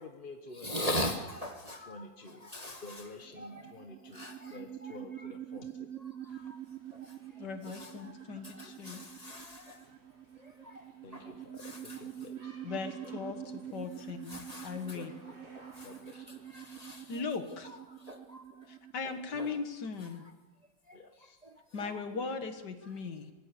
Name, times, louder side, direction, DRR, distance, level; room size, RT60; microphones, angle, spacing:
voice 1, 0.0-1.2 1.9-2.5 2.8-5.9 6.3-6.5 7.7-7.8 11.0-12.6 13.0-13.1 13.4-13.5 14.9-15.4 15.8-16.4 19.3-19.6 20.9-21.4, left 3 dB, 35° left, 5 dB, 1.0 m, -50 dB
voice 2, 0.6-2.0 2.4-3.1 3.4-3.7 4.1-4.6 6.2-6.6 6.9-7.2 7.6-8.1 8.4-9.8 10.4-10.9 11.1-12.0 14.3-15.0 15.5-17.1 17.6-18.7 19.0-19.1 19.4-19.5 20.9-21.0 21.4-22.0 23.0-23.1, equal, 25° right, 4 dB, 1.2 m, -41 dB
sound 1, 3.2-19.6, right 10 dB, 55° right, 0.8 m, -46 dB
sound 2, 6.3-17.2, right 2 dB, 70° right, 4.7 m, -61 dB
voice 3, 7.4-9.0 12.6-15.1 17.1-17.8 18.7-20.3 21.7-23.3, left 5 dB, 60° left, 8 dB, 2.0 m, -39 dB
24.0 x 18.5 x 6.9 m, 1.2 s
omnidirectional pair, 2.1 m